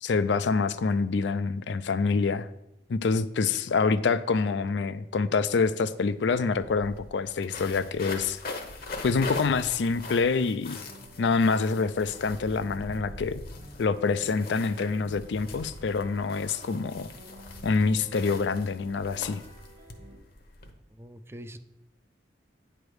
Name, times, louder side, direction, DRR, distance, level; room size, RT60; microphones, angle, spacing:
voice 1, 0.0-2.5 2.9-8.4 9.0-10.8 11.2-13.4 13.8-17.1 17.6-19.4, left 4 dB, 70° left, 14 dB, 0.4 m, -26 dB
sound 1, 6.0-6.1 6.3-20.7, left 3 dB, 55° left, 0.9 m, -42 dB
sound 2, 10.7-20.2, right 1 dB, 55° right, 1.5 m, -51 dB
voice 2, 21.0-21.6, equal, 15° right, 9 dB, 0.4 m, -43 dB
9.2 x 3.4 x 6.2 m, 0.87 s
head